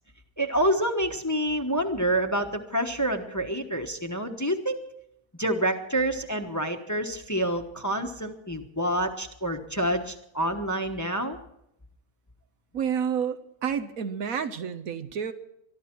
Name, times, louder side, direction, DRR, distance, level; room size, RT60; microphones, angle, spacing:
voice 1, 0.4-4.8 5.4-11.4, right 1 dB, 15° left, 5 dB, 1.0 m, -27 dB
voice 2, 12.7-15.3, right 7 dB, 65° right, 10 dB, 1.2 m, -29 dB
23.5 x 12.5 x 4.6 m, 0.78 s
omnidirectional pair, 1.6 m